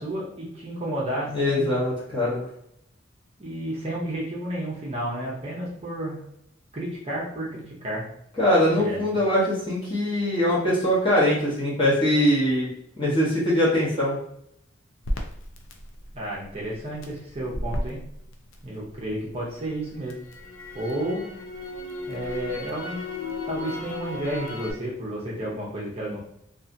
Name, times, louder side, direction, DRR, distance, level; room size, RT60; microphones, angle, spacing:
voice 1, 0.0-1.7 3.4-6.2 6.7-8.1 8.8-9.0 16.1-18.0 18.6-20.2 20.7-21.3 22.1-23.0 23.5-26.2, right 1 dB, 30° right, -5 dB, 0.6 m, -31 dB
voice 2, 1.3-2.4 8.4-12.7 13.0-14.2, left 1 dB, 25° left, -8 dB, 1.0 m, -22 dB
Crackle, 15.0-19.2 19.6-24.7, left 1 dB, 75° left, 0.4 m, -34 dB
2.7 x 2.4 x 2.6 m, 0.73 s
head